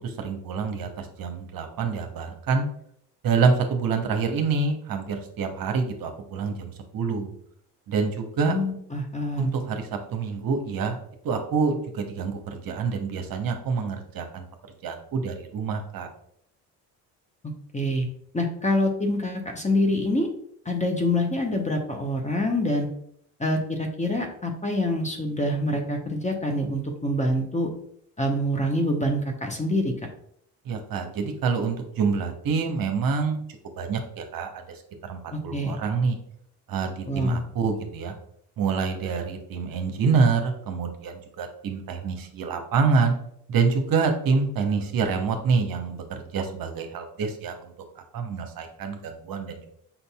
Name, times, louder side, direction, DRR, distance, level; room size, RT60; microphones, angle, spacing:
voice 1, 0.0-2.7 3.2-7.3 7.9-8.6 9.4-11.0 11.2-14.4 14.8-16.1 30.6-33.4 33.8-34.6 35.0-36.2 36.7-38.1 38.6-43.1 43.5-49.7, right 5 dB, 45° right, 5 dB, 0.9 m, -26 dB
voice 2, 8.4-9.7 17.7-18.1 18.3-20.3 20.6-22.9 23.4-27.7 28.2-29.9 35.3-35.8 37.1-37.4, left 1 dB, 15° left, 3 dB, 0.8 m, -26 dB
5.8 x 4.0 x 2.3 m, 0.67 s
hypercardioid pair, 55°, 49 cm